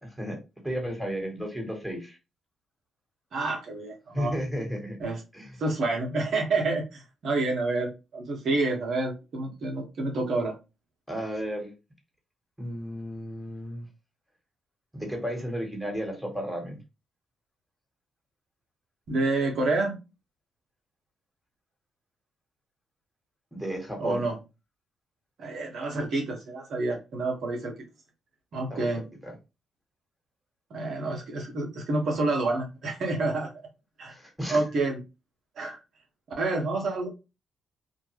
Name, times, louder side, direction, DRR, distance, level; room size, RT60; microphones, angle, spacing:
voice 1, 0.6-2.2 4.1-5.0 5.3-5.5 11.1-11.7 12.6-13.9 14.9-16.8 23.5-24.3 28.7-28.9 29.2-29.3 34.1-34.6, equal, 5° right, 1 dB, 1.3 m, -33 dB
voice 2, 3.3-4.3 5.0-5.2 5.6-10.5 19.1-19.9 24.0-24.4 25.4-27.7 28.5-29.0 30.7-33.5 34.0-34.1 34.5-35.0 35.6-35.8 36.4-37.1, right 2 dB, 60° right, 1 dB, 0.8 m, -28 dB
2.3 x 2.0 x 3.1 m, 0.27 s
hypercardioid pair, 45°, 0 cm